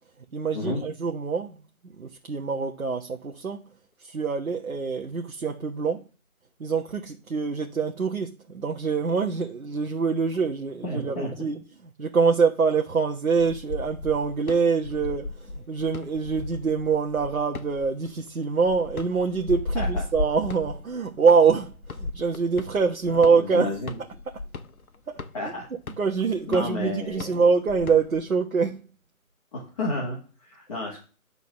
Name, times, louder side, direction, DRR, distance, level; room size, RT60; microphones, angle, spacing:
voice 1, 0.3-1.6 2.0-3.7 4.0-6.0 6.6-11.6 12.0-23.8 25.1-25.2 26.0-28.9, right 5 dB, 70° right, 1.3 m, -25 dB
voice 2, 10.8-11.5 19.8-19.9 23.1-23.9 25.3-25.6 26.5-27.3 29.5-31.0, left 2 dB, 25° left, 1.9 m, -31 dB
sound 1, 13.4-28.4, left 2 dB, 80° left, 1.1 m, -36 dB
9.5 x 4.0 x 6.4 m
figure-of-eight pair, 165°, 42 cm